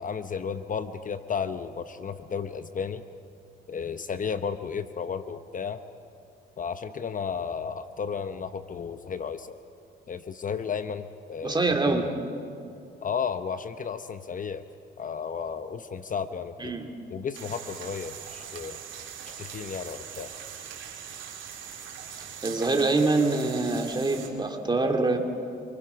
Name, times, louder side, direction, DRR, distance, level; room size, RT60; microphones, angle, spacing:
voice 1, 0.0-3.0 3.7-5.8 6.6-9.6 10.1-12.2 13.0-14.7 15.0-16.8 17.1-18.8 19.4-20.3, left 6 dB, 40° left, 10 dB, 0.8 m, -33 dB
voice 2, 11.4-12.1 16.6-16.9 22.4-25.2, right 3 dB, 20° right, 3 dB, 2.9 m, -25 dB
sound 1, 17.3-24.3, right 8 dB, 75° right, 3.4 m, -41 dB
27.5 x 24.5 x 5.8 m, 2.5 s
cardioid pair, 90°, 20 cm